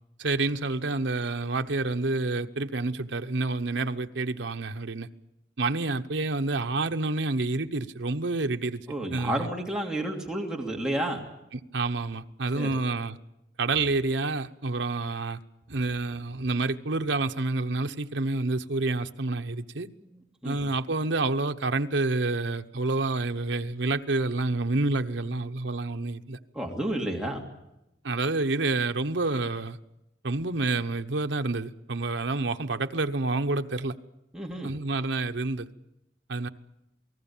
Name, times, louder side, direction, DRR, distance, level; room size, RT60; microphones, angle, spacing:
voice 1, 0.2-5.1 5.6-8.8 9.1-9.5 11.7-13.2 13.6-15.4 15.7-19.9 20.4-26.4 28.0-29.8 30.2-33.9 34.6-35.7 36.3-36.5, right 3 dB, 75° right, 1.0 m, -28 dB
voice 2, 8.9-11.2 12.5-12.7 20.4-20.7 26.5-27.4 34.3-34.7, right 1 dB, 5° right, 2.7 m, -31 dB
28.0 x 19.0 x 7.3 m
head